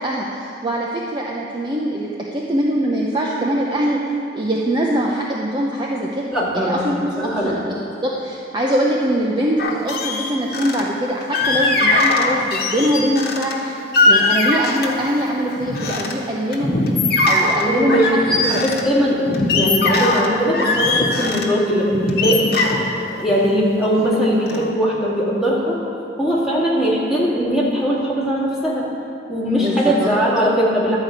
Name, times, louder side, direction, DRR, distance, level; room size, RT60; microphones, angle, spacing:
voice 1, 0.0-4.0 4.3-7.6 8.0-13.8 14.1-18.6 29.6-30.1, equal, 25° right, -3 dB, 0.7 m, -22 dB
voice 2, 6.3-6.9 7.2-7.6 17.6-22.6 23.2-25.8 26.2-28.9 29.3-31.0, equal, ahead, -7 dB, 2.1 m, -20 dB
sound 1, 9.6-10.8 11.3-13.5 13.9-15.1 15.5-16.1 16.5-18.8 19.3-21.5 21.9-24.1 24.5-24.7, left 2 dB, 55° left, 1.2 m, -20 dB
12.0 x 5.0 x 8.2 m, 2.7 s
head